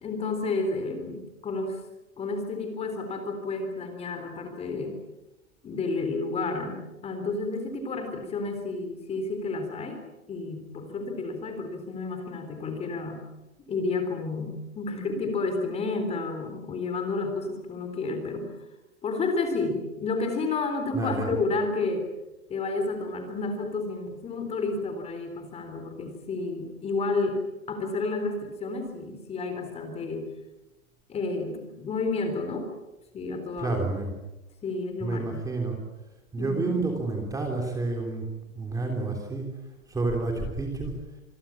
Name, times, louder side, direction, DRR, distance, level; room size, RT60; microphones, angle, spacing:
voice 1, 0.0-1.8 2.2-5.0 5.6-10.0 10.3-13.3 13.7-18.5 19.0-22.1 22.5-27.4 27.7-30.3 31.1-32.7 33.1-33.8 34.6-35.4 36.4-36.8, left 3 dB, 15° left, 6 dB, 3.7 m, -31 dB
voice 2, 20.9-21.3 33.6-34.1 35.0-35.8 36.3-38.2 38.5-39.5 39.9-40.9, right 3 dB, 10° right, 2 dB, 3.4 m, -29 dB
26.5 x 22.5 x 7.3 m, 0.99 s
hypercardioid pair, 145°, 42 cm